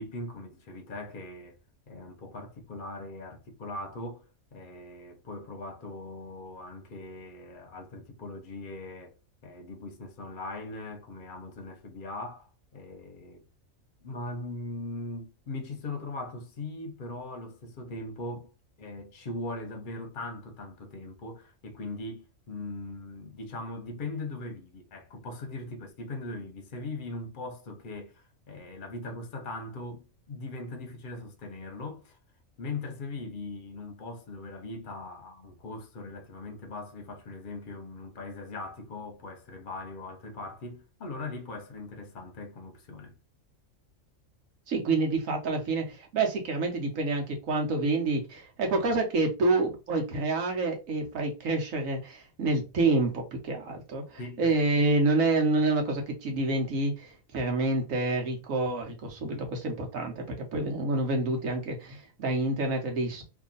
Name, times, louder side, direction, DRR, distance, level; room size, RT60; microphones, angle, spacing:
voice 1, 0.0-1.6 1.9-9.1 9.4-13.4 14.0-18.5 18.8-32.2 32.6-43.1 54.2-54.6 59.2-59.5, left 2 dB, 45° left, 0.7 m, -40 dB
voice 2, 44.7-63.2, right 2 dB, 75° right, 1.4 m, -28 dB
2.9 x 2.6 x 3.8 m
omnidirectional pair, 1.4 m